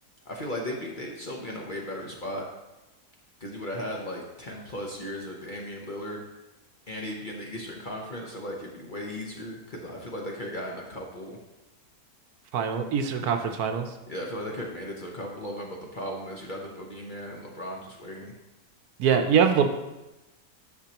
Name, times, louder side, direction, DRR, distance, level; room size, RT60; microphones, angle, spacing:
voice 1, 0.2-2.5 3.4-6.2 6.9-11.4 14.1-18.3, equal, 40° left, -1 dB, 0.8 m, -36 dB
voice 2, 12.5-13.9 19.0-19.7, right 7 dB, 75° right, 6 dB, 1.1 m, -23 dB
9.7 x 6.3 x 2.9 m, 1.0 s
omnidirectional pair, 1.7 m